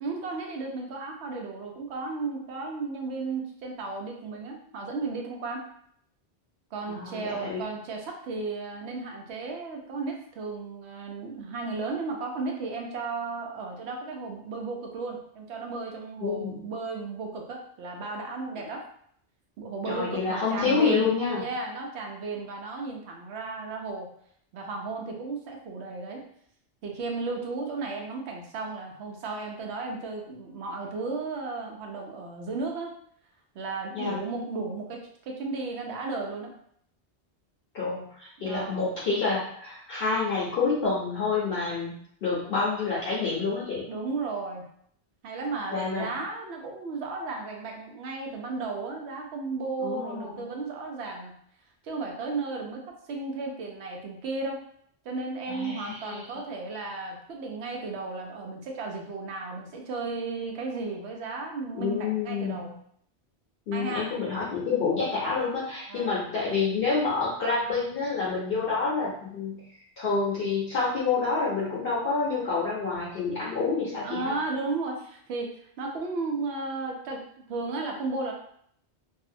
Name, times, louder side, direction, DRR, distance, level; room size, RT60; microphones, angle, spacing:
voice 1, 0.0-5.6 6.7-18.8 19.6-24.1 24.5-26.2 26.8-32.9 33.5-36.5 38.4-38.8 43.9-44.7 45.2-51.4 51.8-52.8 53.1-54.6 55.0-62.7 63.7-64.1 64.7-64.9 65.9-66.3 74.0-75.5 75.8-77.2 77.5-78.3, right 3 dB, 75° right, 1 dB, 0.8 m, -34 dB
voice 2, 6.9-7.6 16.2-16.6 18.6-18.7 19.8-21.4 33.9-34.2 37.7-43.9 45.7-46.1 49.8-50.4 55.5-56.4 61.7-62.7 63.7-69.6 70.0-74.3, left 4 dB, 65° left, -7 dB, 0.8 m, -28 dB
2.6 x 2.0 x 2.5 m, 0.66 s
omnidirectional pair, 1.1 m